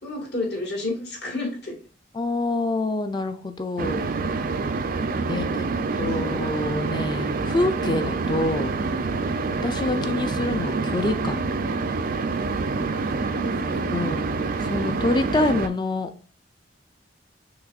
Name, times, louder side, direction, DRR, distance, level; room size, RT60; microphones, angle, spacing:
voice 1, 0.0-1.8 5.1-6.1 13.2-14.0, left 2 dB, 65° left, -2 dB, 1.8 m, -33 dB
voice 2, 2.1-4.0 5.3-5.7 6.0-8.7 9.6-11.4 13.9-14.3 14.7-16.1, left 2 dB, 25° left, 8 dB, 0.4 m, -26 dB
sound 1, 3.8-15.7, right 4 dB, 50° right, 0.4 m, -26 dB
6.1 x 2.9 x 2.4 m, 0.40 s
head